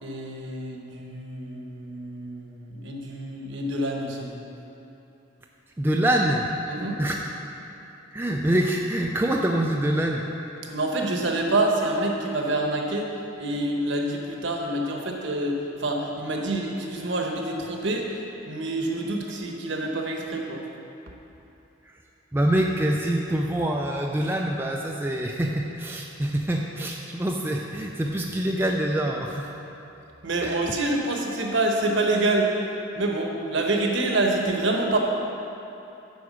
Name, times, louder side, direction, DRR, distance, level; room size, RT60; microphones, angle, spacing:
voice 1, 0.0-4.3 6.7-7.0 10.7-13.1 13.4-18.2 18.5-20.6 30.2-32.6 32.9-35.0, right 2 dB, 65° right, 1 dB, 1.0 m, -27 dB
voice 2, 5.8-6.5 7.0-7.2 8.1-10.2 21.9-22.0 22.3-29.5 30.4-30.6, right 1 dB, 10° right, 0 dB, 0.3 m, -25 dB
9.3 x 4.8 x 6.1 m, 3.0 s
head